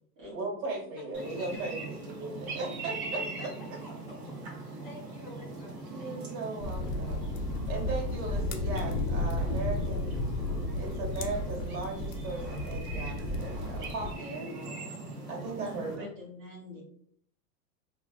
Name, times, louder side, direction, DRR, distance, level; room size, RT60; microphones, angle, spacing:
voice 1, 0.3-3.2 5.9-7.2 7.7-10.2 10.5-14.6 15.3-16.1, right 3 dB, 60° right, -1 dB, 1.5 m, -37 dB
sound 1, 1.1-15.9, right 3 dB, 40° right, 0.9 m, -41 dB
voice 2, 3.1-3.5 3.8-3.9 4.6-6.4, left 2 dB, 20° left, -4 dB, 0.7 m, -49 dB
sound 2, 6.6-14.1, left 2 dB, 55° left, 0.5 m, -33 dB
voice 3, 15.6-16.8, left 1 dB, 15° right, -7 dB, 0.4 m, -45 dB
3.0 x 2.4 x 2.4 m, 0.63 s
supercardioid pair, 145°, 49 cm